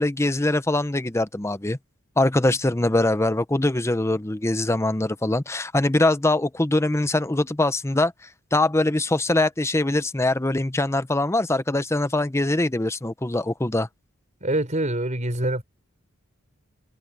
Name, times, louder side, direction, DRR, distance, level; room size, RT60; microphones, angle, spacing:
voice 1, 0.0-1.8 2.2-8.1 8.5-13.9, left 2 dB, 15° left, 0.7 m, -22 dB
voice 2, 14.4-15.6, right 1 dB, 35° right, 5.3 m, -25 dB
head